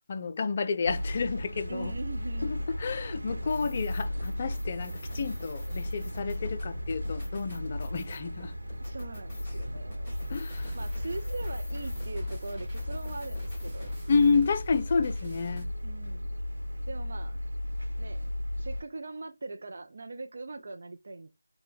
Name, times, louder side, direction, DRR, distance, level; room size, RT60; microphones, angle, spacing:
voice 1, 0.1-1.9 2.4-8.6 10.3-10.8 14.1-15.7, left 5 dB, 30° left, 0.4 m, -30 dB
sound 1, 0.9-18.8, left 1 dB, 75° right, 1.0 m, -35 dB
voice 2, 1.7-2.5 8.8-10.1 10.7-14.0 15.8-16.3 16.9-17.4 18.0-18.3 18.6-21.3, right 3 dB, 50° right, 0.4 m, -41 dB
sound 2, 3.4-14.3, left 3 dB, 15° left, 1.5 m, -47 dB
sound 3, 10.5-15.6, left 2 dB, 10° right, 1.4 m, -47 dB
3.3 x 2.1 x 4.2 m
figure-of-eight pair, 160°, 0 cm